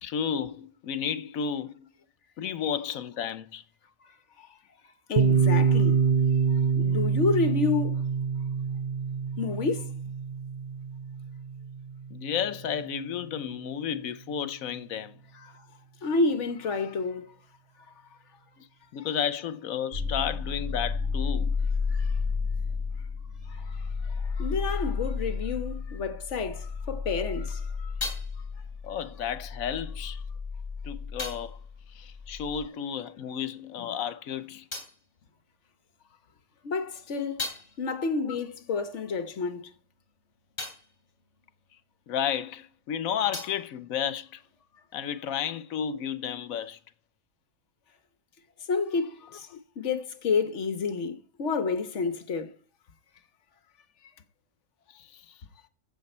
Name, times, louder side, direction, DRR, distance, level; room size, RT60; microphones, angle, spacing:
voice 1, 0.0-1.9 2.4-3.6 12.1-15.1 18.6-18.7 18.9-21.6 28.8-30.2 30.8-31.6 31.9-34.7 38.2-38.4 42.1-44.4 44.9-46.8 49.5-49.6 54.9-55.2, left 8 dB, 85° left, 1.2 m, -32 dB
voice 2, 4.0-4.6 5.1-6.1 6.5-8.0 9.4-9.9 15.3-15.6 16.0-17.4 21.9-22.2 23.4-27.9 28.4-28.5 36.6-37.5 37.8-39.7 48.7-52.6, left 4 dB, 60° left, 1.2 m, -30 dB
Piano, 5.2-12.6, right 6 dB, 45° right, 0.7 m, -26 dB
sound 1, 19.9-32.6, left 5 dB, 65° right, 5.5 m, -32 dB
sound 2, 27.3-33.2 33.4-36.1 36.5-42.6 42.8-44.9, left 3 dB, 45° left, 3.2 m, -43 dB
15.0 x 7.2 x 4.3 m
omnidirectional pair, 1.4 m